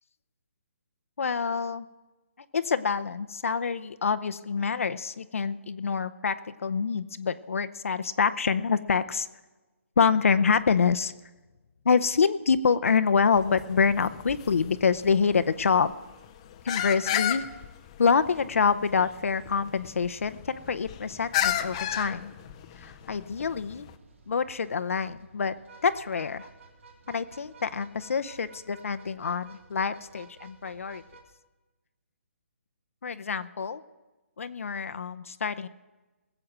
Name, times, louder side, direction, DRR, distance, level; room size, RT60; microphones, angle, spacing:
voice 1, 1.2-1.9 2.5-9.3 10.0-11.1 11.8-15.9 16.6-17.4 18.0-22.3 22.8-23.9 24.3-25.5 25.8-26.5 27.1-31.0 33.0-33.8 34.4-35.7, left 5 dB, 75° left, 11 dB, 0.7 m, -26 dB
sound 1, 13.3-23.9, left 11 dB, 25° left, 0.5 m, -34 dB
sound 2, 18.9-31.2, right 4 dB, 65° right, 3.3 m, -55 dB
20.0 x 7.8 x 6.0 m, 1.2 s
hypercardioid pair, 165°, 8 cm